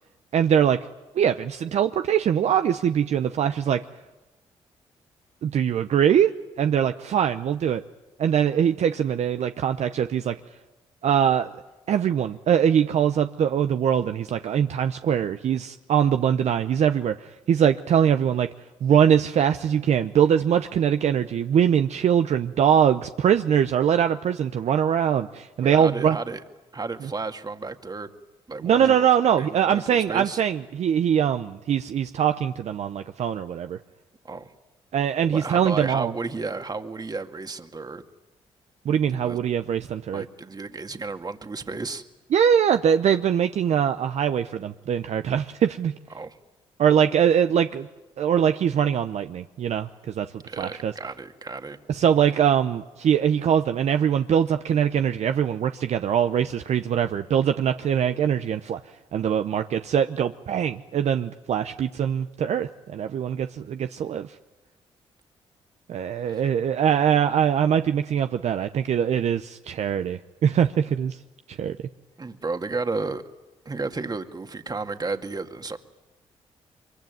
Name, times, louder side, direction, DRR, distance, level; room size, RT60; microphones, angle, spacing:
voice 1, 0.3-0.8 1.1-3.8 5.4-6.3 6.6-7.8 8.2-10.4 11.0-11.5 11.9-18.5 18.8-26.2 28.6-33.8 34.9-36.1 38.8-40.2 42.3-45.9 46.8-47.9 48.2-49.9 50.1-50.3 50.6-50.9 51.9-58.8 59.1-64.3 65.9-71.2 71.5-71.8, right 8 dB, 65° right, 9 dB, 0.8 m, -22 dB
voice 2, 25.6-26.4 26.7-28.1 28.5-29.1 29.4-30.4 34.2-34.5 35.3-38.0 39.1-39.4 40.1-42.0 46.1-46.4 50.5-51.8 66.3-66.4 72.2-73.2 73.7-75.8, right 3 dB, 35° right, 7 dB, 2.1 m, -32 dB
24.0 x 23.5 x 9.4 m, 1.1 s
supercardioid pair, 55°, 12 cm